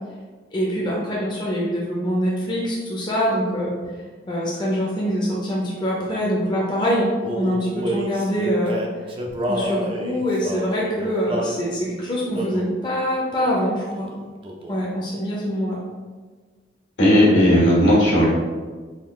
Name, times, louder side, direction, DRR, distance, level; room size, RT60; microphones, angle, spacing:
voice 1, 0.5-3.7 4.3-8.8 9.5-14.1 14.7-15.8, equal, 25° left, -5 dB, 0.5 m, -24 dB
Male singing, 7.2-11.6 12.3-12.8 13.4-13.7 13.9-14.9, equal, 30° right, 0.4 m, -29 dB
voice 2, 17.0-18.3, equal, 80° left, -4 dB, 1.4 m, -15 dB
3.6 x 2.4 x 3.5 m, 1.4 s
head